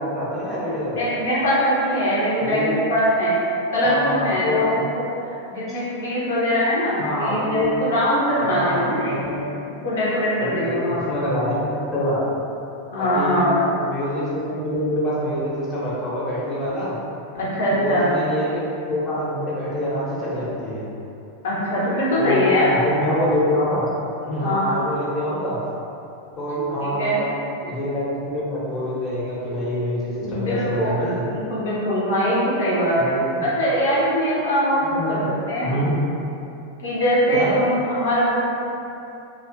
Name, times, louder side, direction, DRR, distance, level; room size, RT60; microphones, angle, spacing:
voice 1, 0.0-1.0 2.4-2.8 3.8-4.8 7.0-7.7 8.4-9.4 10.4-12.4 13.0-13.4 13.8-16.9 17.7-20.9 22.2-23.8 24.2-25.6 26.4-27.3 27.6-31.2 33.0-33.5 34.9-35.3 35.6-35.9 37.3-37.5, left 1 dB, 25° left, -9 dB, 0.8 m, -25 dB
voice 2, 0.9-3.4 3.7-9.4 9.8-11.1 12.9-13.5 17.3-18.1 21.4-22.7 24.4-24.7 26.8-27.2 30.2-33.1 33.4-35.2 35.5-35.9 36.8-38.4, equal, 60° left, -9 dB, 0.7 m, -22 dB
2.4 x 2.2 x 2.4 m, 2.8 s
figure-of-eight pair, 90°, 0 cm